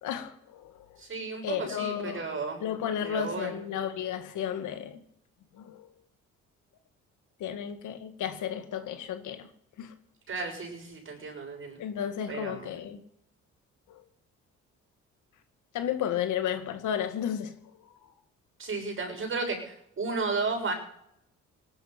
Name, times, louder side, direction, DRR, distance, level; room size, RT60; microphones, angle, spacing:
voice 1, 0.0-0.8 1.4-2.3 2.6-5.0 5.5-5.9 7.4-9.5 9.8-9.9 11.8-13.0 13.9-14.0 15.7-17.5, left 9 dB, 80° left, 8 dB, 1.8 m, -33 dB
voice 2, 1.0-2.6 3.0-3.6 10.3-11.8 12.3-12.7 18.6-20.7, right 4 dB, 45° right, 2 dB, 6.9 m, -33 dB
19.0 x 11.0 x 5.9 m, 0.73 s
cardioid pair, 90°, 30 cm